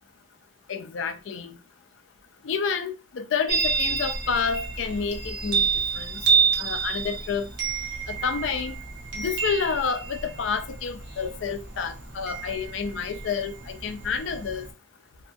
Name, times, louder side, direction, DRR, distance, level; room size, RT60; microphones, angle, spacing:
voice 1, 0.7-1.6 2.4-5.6 5.9-6.2 6.6-7.5 8.1-8.7 9.2-14.7, left 6 dB, 85° left, 0.4 m, -29 dB
Chime, 3.5-14.7, right 5 dB, 65° right, 0.7 m, -29 dB
2.6 x 2.3 x 2.6 m
head